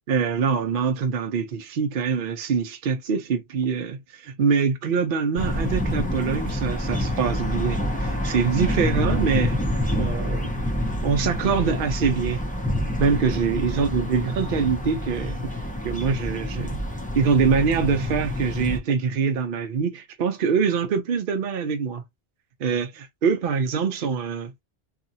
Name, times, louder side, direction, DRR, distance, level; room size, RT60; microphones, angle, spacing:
voice 1, 0.1-9.6 9.9-10.5 11.0-12.4 13.0-15.4 15.8-16.8 17.1-22.0 22.6-24.5, right 6 dB, 65° right, 0.8 m, -24 dB
sound 1, 5.4-18.8, left 1 dB, 10° left, 0.7 m, -27 dB
2.8 x 2.4 x 2.6 m
omnidirectional pair, 1.0 m